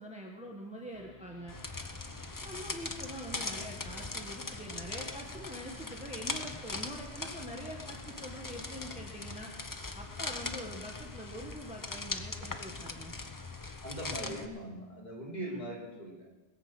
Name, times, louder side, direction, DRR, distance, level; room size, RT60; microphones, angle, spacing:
voice 1, 0.0-1.6 2.4-9.5 9.9-13.1 15.5-15.7, equal, 5° right, 0 dB, 1.4 m, -44 dB
sound 1, 0.9-10.0, right 1 dB, 30° right, 2.1 m, -56 dB
sound 2, 1.5-14.4, left 3 dB, 20° left, 0.7 m, -40 dB
voice 2, 13.8-16.3, right 1 dB, 40° left, -4 dB, 4.1 m, -41 dB
20.0 x 6.9 x 7.8 m, 1.1 s
omnidirectional pair, 1.1 m